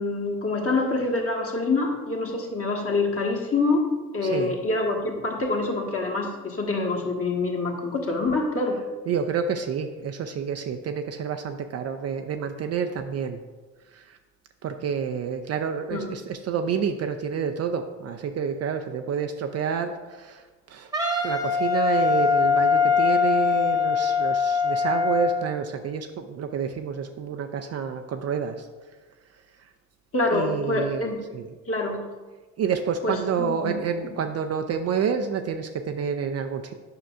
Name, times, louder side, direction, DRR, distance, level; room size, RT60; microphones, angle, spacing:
voice 1, 0.0-3.9 4.1-8.8 15.9-16.1 30.1-31.2 31.7-32.0 33.0-33.8 34.0-34.1, left 3 dB, 35° left, 0 dB, 1.4 m, -26 dB
voice 2, 4.2-4.6 9.1-13.4 13.9-14.2 14.6-20.4 20.7-20.9 21.2-28.7 30.3-31.1 31.3-31.5 32.6-36.7, right 6 dB, 40° right, 6 dB, 0.5 m, -28 dB
Wind instrument woodwind instrument, 20.9-25.4, left 5 dB, 10° right, 1.1 m, -22 dB
9.4 x 5.9 x 2.4 m, 1.3 s
figure-of-eight pair, 45°, 41 cm